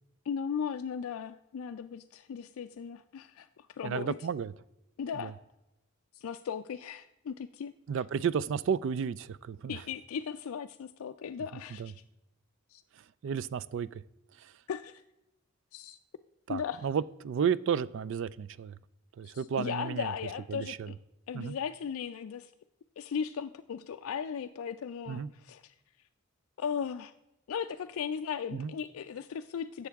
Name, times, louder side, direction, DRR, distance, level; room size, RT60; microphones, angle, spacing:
voice 1, 0.3-4.2 5.0-5.3 6.1-8.0 9.7-12.0 12.7-12.8 14.7-15.0 15.7-16.0 16.5-16.9 19.2-21.0 21.3-22.5 23.0-25.7 26.6-27.1 27.5-29.9, left 7 dB, 70° left, 8 dB, 0.3 m, -37 dB
voice 2, 3.8-4.5 5.2-5.3 7.9-9.7 11.8-11.9 13.2-14.0 16.5-18.8 19.2-20.1 20.5-20.9 21.3-21.5 25.1-25.3 28.5-28.7, right 7 dB, 55° right, 17 dB, 0.3 m, -32 dB
11.5 x 7.1 x 3.5 m, 0.91 s
head